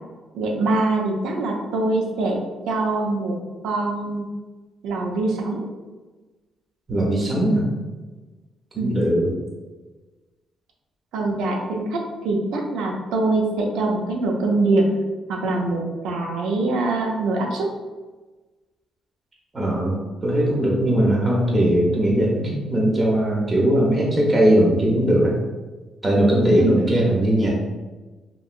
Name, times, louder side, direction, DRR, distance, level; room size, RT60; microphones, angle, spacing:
voice 1, 0.3-2.4 2.7-3.4 3.6-4.3 4.8-5.7 8.8-8.9 11.1-14.9 15.3-17.7 26.6-26.7, right 2 dB, 85° right, 1 dB, 0.5 m, -23 dB
voice 2, 6.9-7.7 8.7-9.3 19.5-19.9 20.2-25.3 26.0-27.5, right 1 dB, 30° right, -3 dB, 0.7 m, -19 dB
2.9 x 2.6 x 2.4 m, 1.3 s
cardioid pair, 90°, 0 cm